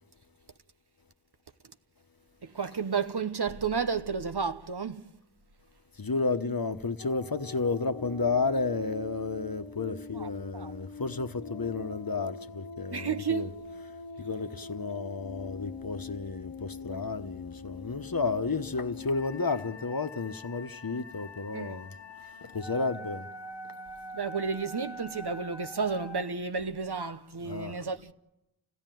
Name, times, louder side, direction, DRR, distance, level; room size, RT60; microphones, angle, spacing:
voice 1, 2.4-5.1 10.1-10.7 12.9-13.5 21.5-21.8 24.1-28.1, right 5 dB, 70° right, 1.0 m, -32 dB
voice 2, 5.9-13.5 14.2-21.9 22.4-23.3 27.4-27.8, left 4 dB, 55° left, 1.1 m, -32 dB
sound 1, 7.0-26.2, left 3 dB, 85° left, 1.1 m, -44 dB
28.0 x 16.0 x 9.2 m
wide cardioid pair, 45°, 41 cm